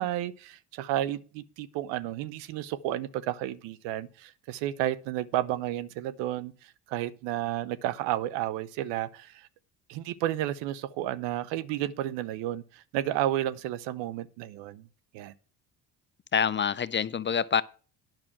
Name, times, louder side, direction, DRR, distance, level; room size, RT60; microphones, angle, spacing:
voice 1, 0.0-9.5 9.9-14.9 15.1-15.3, right 13 dB, 80° right, 0.7 m, -32 dB
voice 2, 16.3-17.6, left 7 dB, 25° left, 0.5 m, -26 dB
9.0 x 6.0 x 7.2 m
supercardioid pair, 65°, 43 cm